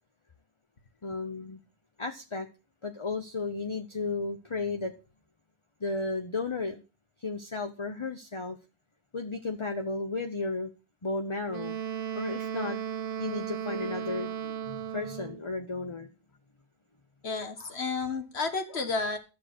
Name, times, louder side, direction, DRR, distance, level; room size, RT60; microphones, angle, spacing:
voice 1, 1.0-1.6 2.0-2.5 2.8-4.9 5.8-6.8 7.2-8.6 9.1-10.7 11.0-11.8 12.1-12.8 13.2-16.1, left 3 dB, 30° left, 5 dB, 0.9 m, -34 dB
Wind instrument woodwind instrument, 11.5-15.4, right 8 dB, 55° right, 0.9 m, -35 dB
voice 2, 17.2-19.2, left 4 dB, 65° left, 7 dB, 1.9 m, -31 dB
12.5 x 6.6 x 6.2 m, 0.32 s
omnidirectional pair, 1.2 m